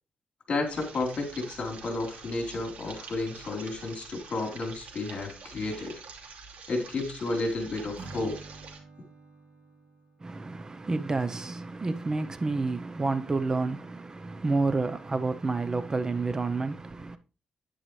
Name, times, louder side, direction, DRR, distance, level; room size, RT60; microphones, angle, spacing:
voice 1, 0.5-6.0 6.7-8.4, left 2 dB, 50° left, 3.9 m, -32 dB
sound 1, 0.7-8.8, right 5 dB, 70° right, 2.9 m, -46 dB
Acoustic guitar / Strum, 8.0-11.2, right 3 dB, 55° right, 2.8 m, -49 dB
voice 2, 10.2-17.2, right 3 dB, 25° right, 0.7 m, -29 dB
10.5 x 9.9 x 3.3 m
cardioid pair, 110°, 2 cm